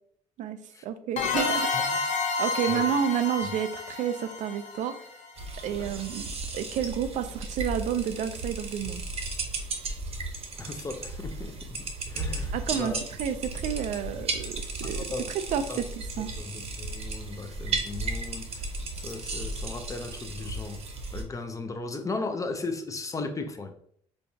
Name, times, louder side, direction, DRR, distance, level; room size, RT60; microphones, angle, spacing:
voice 1, 0.4-1.7 2.4-5.0 5.6-9.0 12.5-12.9 13.2-15.1 15.5-16.3, right 9 dB, 65° right, 10 dB, 0.4 m, -30 dB
sound 1, 1.2-5.7, left 4 dB, 60° left, 0.7 m, -30 dB
sound 2, 5.4-21.2, right 3 dB, 50° right, 0.8 m, -35 dB
voice 2, 10.6-13.0 14.8-15.3 15.7-15.8 16.4-18.7 18.9-20.8 21.1-23.7, left 3 dB, 25° left, 6 dB, 0.5 m, -36 dB
4.4 x 2.3 x 2.6 m, 0.63 s
cardioid pair, 85°, 14 cm